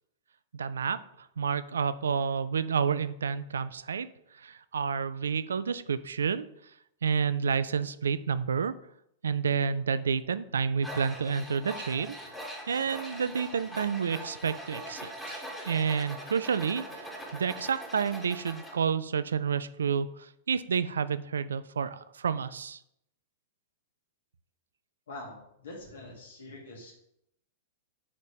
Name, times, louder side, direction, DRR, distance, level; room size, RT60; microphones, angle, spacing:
voice 1, 0.5-4.1 4.3-6.5 7.0-8.7 9.2-12.2 12.7-17.0 17.3-22.8, right 6 dB, 70° right, 15 dB, 0.3 m, -30 dB
Tools, 10.8-18.8, equal, 5° left, 1.5 m, -42 dB
voice 2, 25.1-27.0, left 2 dB, 70° left, -1 dB, 2.2 m, -44 dB
5.1 x 4.2 x 5.1 m, 0.76 s
figure-of-eight pair, 100°, 0 cm